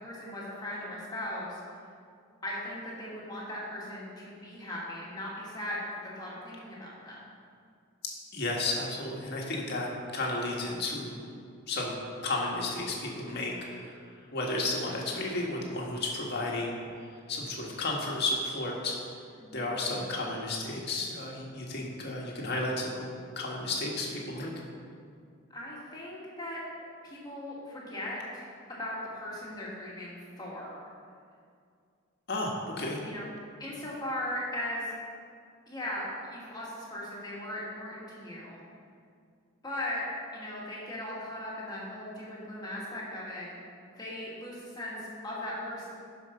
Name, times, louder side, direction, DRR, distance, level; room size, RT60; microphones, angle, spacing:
voice 1, 0.0-1.8 2.4-7.2 19.4-19.6 25.5-26.6 27.0-28.4 28.8-30.8 33.0-33.3 33.6-34.9 35.7-38.6 39.6-40.0 40.3-43.5 43.9-45.9, left 1 dB, 20° left, -6 dB, 2.2 m, -38 dB
voice 2, 8.3-9.9 10.1-11.2 11.7-11.9 12.2-13.9 14.3-16.8 17.3-19.0 19.5-23.1 23.4-24.5 32.3-33.0, left 2 dB, 55° left, -2 dB, 1.7 m, -32 dB
12.0 x 5.3 x 5.4 m, 2.3 s
head